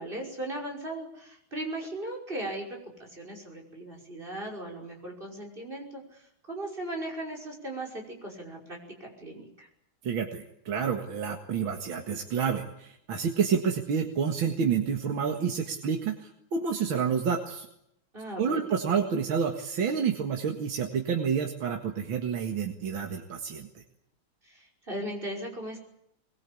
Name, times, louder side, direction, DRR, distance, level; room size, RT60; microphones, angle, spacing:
voice 1, 0.0-9.7 18.1-18.7 24.4-25.8, right 1 dB, 25° right, 0 dB, 6.0 m, -38 dB
voice 2, 10.0-17.7 18.4-23.7, right 6 dB, 75° right, 2 dB, 2.6 m, -29 dB
24.0 x 22.0 x 8.6 m, 0.76 s
omnidirectional pair, 2.2 m